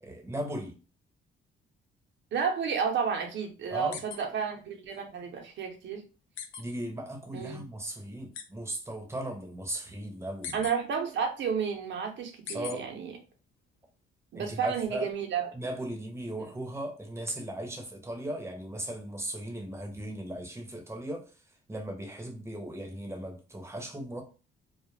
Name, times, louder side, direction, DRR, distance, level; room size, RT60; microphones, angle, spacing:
voice 1, 0.0-0.8 3.7-4.0 6.6-10.6 12.5-12.8 14.3-15.1 15.5-21.2 21.7-24.2, right 1 dB, 15° right, 0.8 m, -37 dB
voice 2, 2.3-6.0 7.3-7.6 10.5-13.1 14.3-15.5 16.4-16.5, right 6 dB, 65° right, 0.8 m, -31 dB
sound 1, 3.9-4.2 4.6-4.7 6.4-6.6 8.3-8.4 10.4-10.7 12.5-12.7, left 7 dB, 85° left, 0.5 m, -38 dB
2.3 x 2.1 x 3.2 m
cardioid pair, 90°, 20 cm